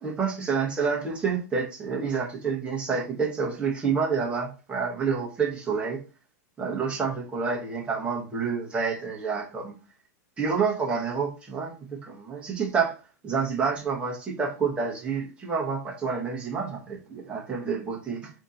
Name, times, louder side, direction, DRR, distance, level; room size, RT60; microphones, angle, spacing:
voice 1, 0.0-6.0 6.6-9.7 10.4-18.3, right 5 dB, 10° right, 1.0 m, -28 dB
3.5 x 2.8 x 3.8 m
supercardioid pair, 160°, 9 cm